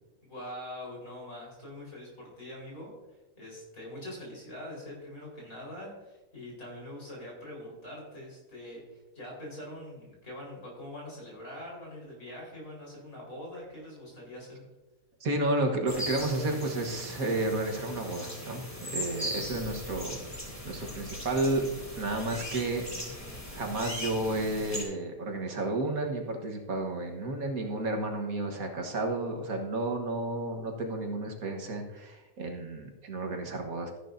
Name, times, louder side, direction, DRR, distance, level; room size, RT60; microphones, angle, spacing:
voice 1, 0.2-2.9 3.4-14.6, left 1 dB, 60° left, -3 dB, 4.7 m, -43 dB
voice 2, 15.2-20.2 20.6-21.7 22.0-22.8 23.5-33.9, right 2 dB, 65° right, 2 dB, 1.8 m, -32 dB
sound 1, 15.9-24.8, equal, 10° left, 2.4 m, -39 dB
14.0 x 11.0 x 2.7 m, 1.1 s
omnidirectional pair, 1.6 m